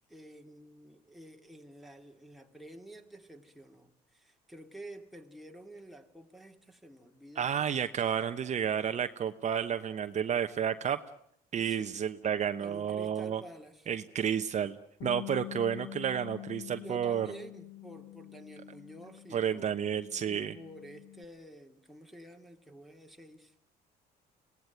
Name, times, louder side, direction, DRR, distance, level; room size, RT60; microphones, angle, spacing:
voice 1, 0.1-7.7 11.6-11.9 12.6-13.9 16.8-19.7 20.2-23.5, right 1 dB, ahead, 2.6 m, -50 dB
voice 2, 7.4-11.0 11.5-13.4 13.9-17.3 19.3-20.5, right 8 dB, 45° right, 1.1 m, -31 dB
Bass guitar, 15.0-21.3, left 17 dB, 75° left, 1.3 m, -46 dB
25.5 x 18.5 x 9.3 m
cardioid pair, 110°, 17 cm